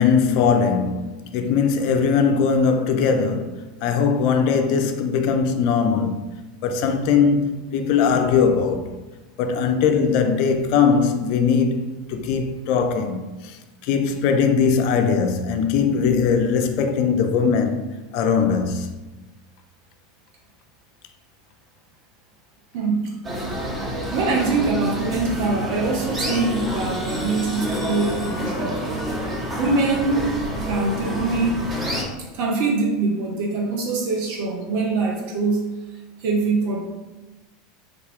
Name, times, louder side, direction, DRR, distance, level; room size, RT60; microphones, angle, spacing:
voice 1, 0.0-6.3 6.6-8.9 9.4-17.9 18.1-18.9, left 6 dB, 55° left, 0.3 m, -20 dB
voice 2, 22.7-23.2 24.1-28.8 29.6-31.9 32.3-35.7 36.2-36.8, right 3 dB, 60° right, 0.5 m, -23 dB
sound 1, 23.2-32.0, equal, 20° right, 0.9 m, -28 dB
3.5 x 2.3 x 3.4 m
hypercardioid pair, 85°, 0 cm